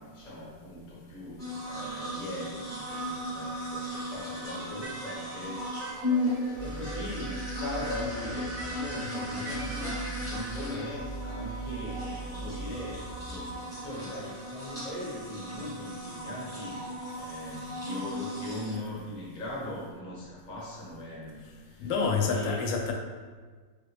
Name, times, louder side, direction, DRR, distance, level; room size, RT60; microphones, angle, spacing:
voice 1, 0.0-5.8 6.6-16.8 17.1-21.9 22.3-22.7, left 1 dB, 30° left, -5 dB, 1.0 m, -40 dB
sound 1, 1.4-18.8, left 1 dB, 5° left, 0.8 m, -36 dB
sound 2, 4.1-10.1, right 1 dB, 50° right, 0.7 m, -44 dB
sound 3, 6.5-13.6, right 4 dB, 75° right, 1.2 m, -41 dB
voice 2, 21.8-22.9, left 5 dB, 90° left, 2 dB, 1.3 m, -27 dB
4.2 x 3.3 x 3.0 m, 1.5 s
omnidirectional pair, 1.9 m